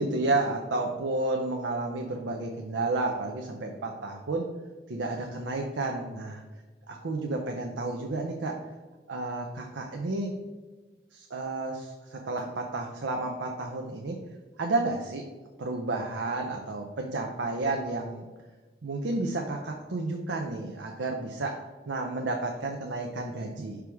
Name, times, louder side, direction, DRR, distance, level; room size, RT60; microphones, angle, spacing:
voice 1, 0.0-4.5 4.9-6.4 6.9-8.6 9.1-10.3 11.1-14.2 14.6-15.3 15.6-18.3 18.8-23.8, right 2 dB, 85° right, 2 dB, 0.6 m, -31 dB
6.0 x 4.7 x 3.5 m, 1.3 s
head